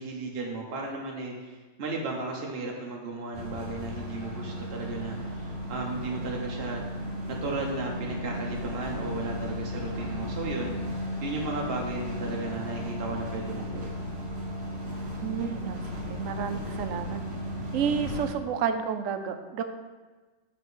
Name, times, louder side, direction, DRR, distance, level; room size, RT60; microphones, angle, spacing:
voice 1, 0.0-6.8 7.3-10.8 11.2-13.9, right 3 dB, 55° right, -1 dB, 1.0 m, -35 dB
sound 1, 3.3-18.3, equal, 30° right, 1.6 m, -35 dB
voice 2, 15.2-15.8 16.1-17.2 17.7-19.6, right 7 dB, 90° right, 8 dB, 1.0 m, -30 dB
7.4 x 3.3 x 6.2 m, 1.3 s
omnidirectional pair, 1.3 m